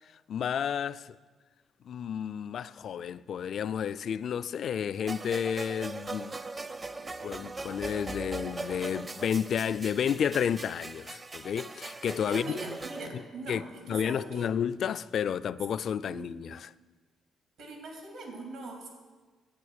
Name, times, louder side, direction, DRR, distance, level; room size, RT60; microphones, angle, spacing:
voice 1, 0.3-1.1 1.8-6.4 7.2-12.5 13.5-13.6 13.9-16.7, left 8 dB, 60° left, 0.3 m, -31 dB
sound 1, 5.1-13.1, right 3 dB, 30° right, 0.5 m, -40 dB
voice 2, 12.3-14.5 16.0-16.3 17.6-18.9, right 1 dB, 80° right, 3.1 m, -41 dB
11.0 x 8.8 x 6.5 m
cardioid pair, 90°, 0 cm